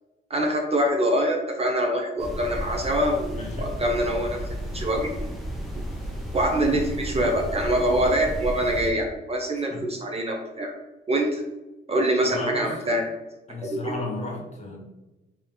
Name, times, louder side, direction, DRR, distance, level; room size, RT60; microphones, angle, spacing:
voice 1, 0.3-4.4 4.7-5.1 6.3-10.7 11.1-11.4 11.9-13.0 13.6-13.9, right 1 dB, 30° right, 1 dB, 0.7 m, -24 dB
sound 1, 2.2-8.9, equal, ahead, 0.9 m, -33 dB
voice 2, 3.3-3.7 9.7-9.9 12.2-12.8 13.5-14.8, left 2 dB, 35° left, -1 dB, 1.2 m, -34 dB
3.3 x 2.9 x 3.8 m, 1.0 s
cardioid pair, 90°, 20 cm